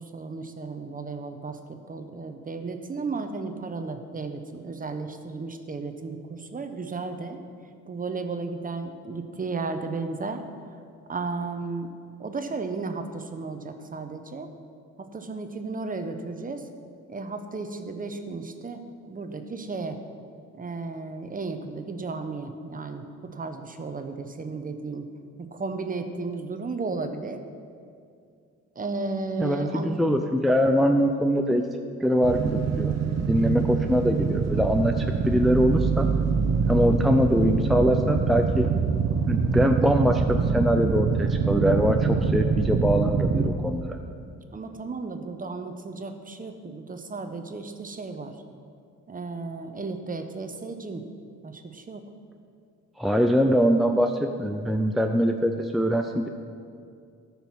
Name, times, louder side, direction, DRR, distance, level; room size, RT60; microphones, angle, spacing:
voice 1, 0.0-7.4 7.9-10.4 10.7-10.8 11.1-11.9 12.2-14.5 15.0-16.7 17.1-20.0 20.5-25.1 25.4-27.4 28.7-30.0 44.5-48.4 49.1-51.1 51.4-52.0, right 3 dB, 30° right, 7 dB, 0.9 m, -34 dB
voice 2, 29.4-31.6 32.0-32.9 33.2-36.1 36.7-38.7 39.3-44.0 53.0-56.3, equal, ahead, 4 dB, 0.5 m, -23 dB
sound 1, 32.2-43.5, right 5 dB, 60° right, 1.0 m, -24 dB
13.5 x 5.6 x 6.0 m, 2.3 s
cardioid pair, 90°, 30 cm